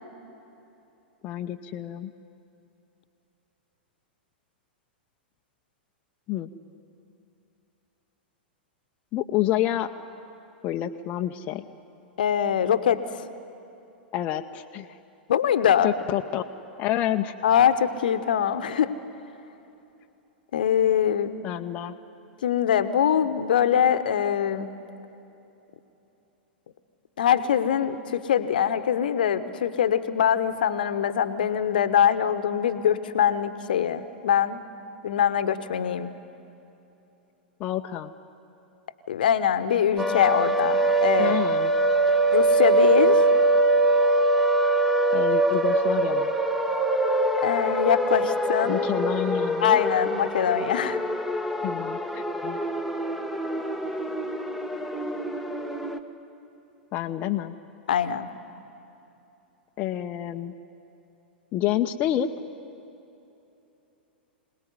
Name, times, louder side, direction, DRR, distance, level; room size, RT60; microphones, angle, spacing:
voice 1, 1.2-2.1 6.3-6.5 9.1-9.9 10.6-11.6 14.1-14.9 15.8-16.4 16.8-17.3 21.4-21.9 37.6-38.1 41.2-41.7 45.1-46.3 48.6-49.8 51.6-52.6 53.5-53.6 56.9-57.5 59.8-60.5 61.5-62.3, left 12 dB, 30° left, 4 dB, 0.8 m, -28 dB
voice 2, 12.2-13.2 15.3-15.9 17.4-18.9 20.5-21.3 22.4-24.7 27.2-34.6 35.0-36.1 39.1-41.4 42.3-43.2 47.4-48.9 49.6-51.0 57.9-58.3, left 9 dB, 60° left, 11 dB, 1.1 m, -23 dB
sound 1, 40.0-56.0, right 2 dB, ahead, 1.2 m, -23 dB
26.0 x 19.0 x 9.6 m, 2.9 s
figure-of-eight pair, 100°, 6 cm